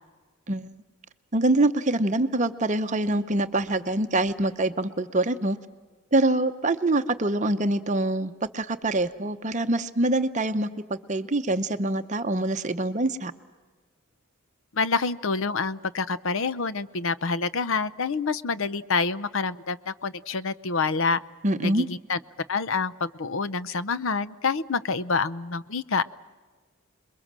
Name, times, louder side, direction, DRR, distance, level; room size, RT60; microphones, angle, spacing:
voice 1, 1.3-5.6 6.1-13.3 21.4-21.9, right 2 dB, 35° right, 9 dB, 0.8 m, -25 dB
voice 2, 14.7-21.2 21.6-22.2 22.5-26.0, left 4 dB, 65° left, 15 dB, 0.7 m, -27 dB
27.5 x 22.0 x 7.5 m, 1.4 s
head